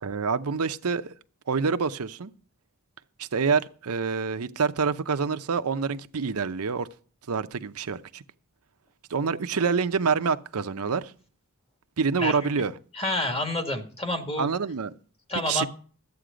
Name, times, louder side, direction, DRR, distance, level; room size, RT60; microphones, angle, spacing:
voice 1, 0.0-1.1 1.5-2.3 3.2-6.9 7.3-8.2 9.1-11.1 12.0-12.7 14.4-14.9 15.5-15.6, right 5 dB, 75° right, 0.7 m, -27 dB
voice 2, 13.0-14.5 15.3-15.7, left 1 dB, 25° left, 1.8 m, -28 dB
13.0 x 8.6 x 5.0 m
head